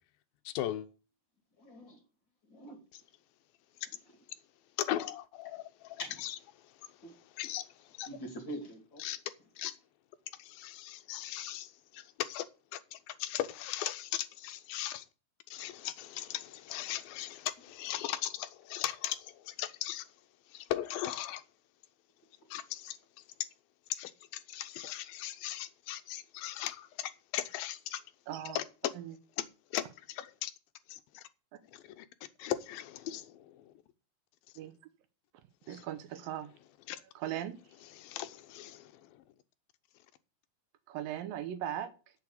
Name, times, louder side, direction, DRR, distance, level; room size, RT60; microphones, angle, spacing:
voice 1, 0.5-0.9 4.8-7.1 7.4-8.1 9.0-9.2 9.6-9.7 10.4-15.1 15.5-20.1 20.5-21.4 22.5-23.2 23.9-28.0 28.6-28.7 29.7-30.5 30.9-31.3 31.7-32.1 32.4-33.7 35.6-35.9 36.9-37.0 37.9-39.2, left 13 dB, 80° left, 2.6 m, -39 dB
voice 2, 1.6-2.0 2.5-2.8 6.0-6.2 7.0-7.1 8.1-9.0, equal, 35° left, 2.5 m, -43 dB
voice 3, 28.3-28.6 29.0-29.1 34.6-34.7 35.7-36.5 37.2-37.6 40.9-41.9, right 11 dB, 75° right, 2.6 m, -38 dB
8.4 x 6.9 x 8.2 m
omnidirectional pair, 4.2 m